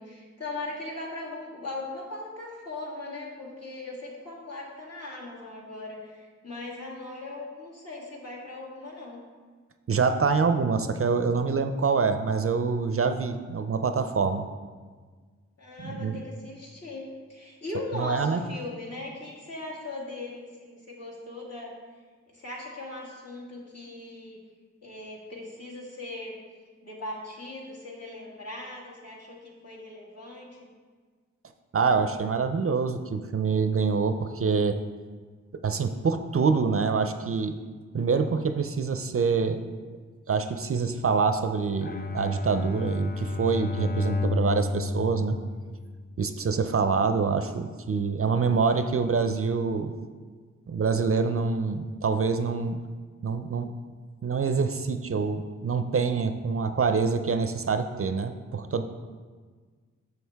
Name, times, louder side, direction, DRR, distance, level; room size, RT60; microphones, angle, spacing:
voice 1, 0.0-9.2 15.6-21.7 22.3-24.4 24.8-26.4 26.8-30.6 46.5-46.6, left 2 dB, 55° left, -5 dB, 2.0 m, -39 dB
voice 2, 9.9-14.5 15.8-16.2 17.9-18.4 31.7-34.8 35.6-37.5 37.9-39.6 40.3-45.4 46.2-49.9 50.7-52.8 53.2-53.7 54.2-58.8, right 5 dB, 50° right, 9 dB, 0.5 m, -26 dB
Bowed string instrument, 41.8-46.2, left 2 dB, 30° left, 0.5 m, -31 dB
6.8 x 6.3 x 3.4 m, 1.5 s
cardioid pair, 50°, 30 cm